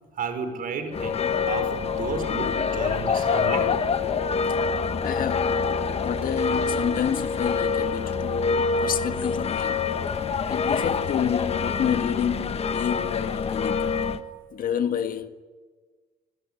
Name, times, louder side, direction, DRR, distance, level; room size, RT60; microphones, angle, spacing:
voice 1, 0.1-1.1 1.5-3.8, right 5 dB, 55° right, 5.7 m, -32 dB
sound 1, 0.9-14.2, left 5 dB, 35° left, 1.5 m, -26 dB
voice 2, 5.0-5.6 6.0-9.8 10.5-14.0 14.5-15.3, left 9 dB, 55° left, 1.8 m, -29 dB
29.0 x 19.0 x 9.9 m
cardioid pair, 110°, 17 cm